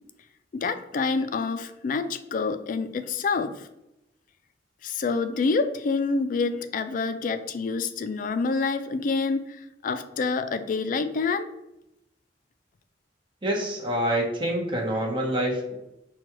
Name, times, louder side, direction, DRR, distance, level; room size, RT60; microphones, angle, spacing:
voice 1, 0.5-3.7 4.8-11.5, left 4 dB, 50° left, 9 dB, 0.3 m, -27 dB
voice 2, 13.4-15.7, right 1 dB, 30° right, 0 dB, 0.9 m, -26 dB
5.9 x 2.3 x 2.9 m, 0.86 s
head